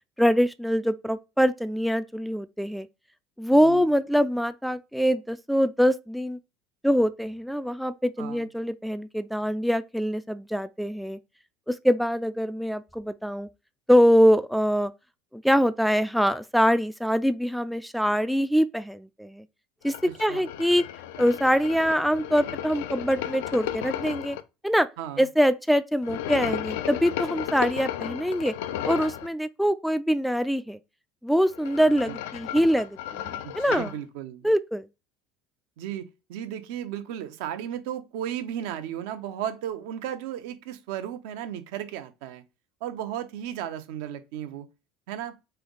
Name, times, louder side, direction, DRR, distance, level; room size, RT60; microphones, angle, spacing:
voice 1, 0.2-2.9 3.4-6.4 6.8-11.2 11.7-13.5 13.9-14.9 15.3-19.4 19.8-20.9 21.2-24.4 24.6-24.9 25.2-28.5 28.8-30.8 31.2-33.9 34.4-34.9, equal, ahead, 0.3 m, -24 dB
sound 1, 19.9-24.4 26.0-29.3 31.4-34.0, left 11 dB, 85° left, 0.4 m, -34 dB
voice 2, 20.0-20.4 25.0-25.2 32.1-32.2 33.4-34.5 35.8-42.4 42.8-44.7 45.1-45.3, right 10 dB, 80° right, 0.8 m, -35 dB
3.5 x 3.4 x 3.9 m
supercardioid pair, 100°, 0 cm